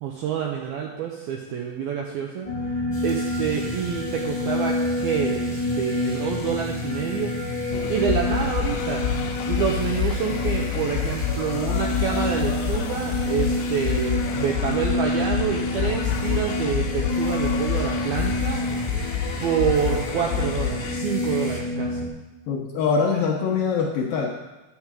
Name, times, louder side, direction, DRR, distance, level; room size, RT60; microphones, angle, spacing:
voice 1, 0.0-2.5 3.0-7.3 7.9-9.1 9.5-18.6 19.4-22.1, right 8 dB, 80° right, 0 dB, 2.2 m, -27 dB
sound 1, 2.4-22.1, left 2 dB, 50° left, 0.4 m, -28 dB
sound 2, 2.9-21.6, left 1 dB, 10° left, 2.0 m, -41 dB
sound 3, 7.7-21.0, left 8 dB, 85° left, 2.3 m, -28 dB
voice 2, 22.5-24.3, left 5 dB, 70° left, 0 dB, 2.4 m, -23 dB
10.5 x 6.2 x 7.4 m, 1.1 s
omnidirectional pair, 5.4 m